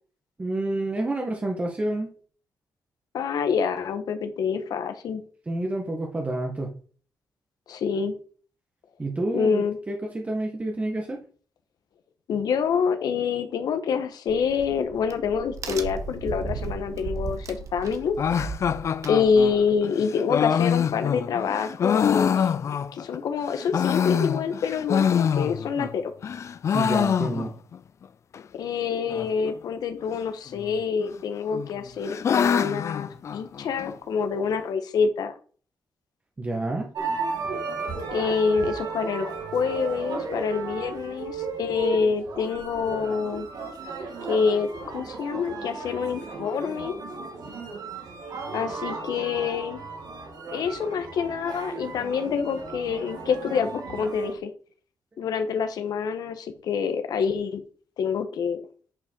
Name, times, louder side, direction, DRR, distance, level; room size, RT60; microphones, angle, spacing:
voice 1, 0.4-2.1 5.5-6.7 9.0-11.2 26.7-27.5 36.4-36.9, right 2 dB, 20° right, 1 dB, 1.5 m, -29 dB
voice 2, 3.1-5.2 7.7-8.1 9.3-9.8 12.3-18.1 19.1-22.5 22.9-26.1 28.5-35.3 38.1-43.5 44.2-47.0 48.5-49.8 50.5-54.5 55.2-57.6 58.0-58.6, left 6 dB, 75° left, 8 dB, 1.5 m, -26 dB
Crack, 14.3-19.7, right 4 dB, 50° right, 1.4 m, -36 dB
sound 1, 18.2-23.2 23.5-25.9 26.2-27.8 28.0-28.1 28.3-28.4 29.1-29.5 30.5-31.1 31.5-33.9, left 7 dB, 45° left, 0.4 m, -25 dB
sound 2, 36.9-54.4, right 4 dB, 65° right, 2.3 m, -35 dB
9.9 x 5.6 x 4.7 m, 0.42 s
wide cardioid pair, 140°, 7 cm